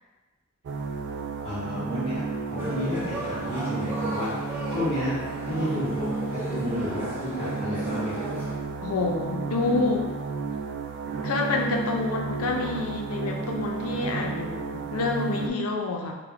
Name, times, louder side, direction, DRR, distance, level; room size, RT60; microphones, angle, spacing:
sound 1, 0.6-15.5, right 4 dB, 50° right, 0.3 m, -32 dB
voice 1, 1.4-5.2 5.4-8.3, left 1 dB, 25° left, -14 dB, 0.8 m, -32 dB
sound 2, 2.6-8.5, equal, 10° right, 0.6 m, -36 dB
voice 2, 8.8-10.1 11.2-16.1, left 3 dB, 80° left, 2 dB, 0.5 m, -28 dB
3.2 x 2.1 x 3.5 m, 1.3 s
head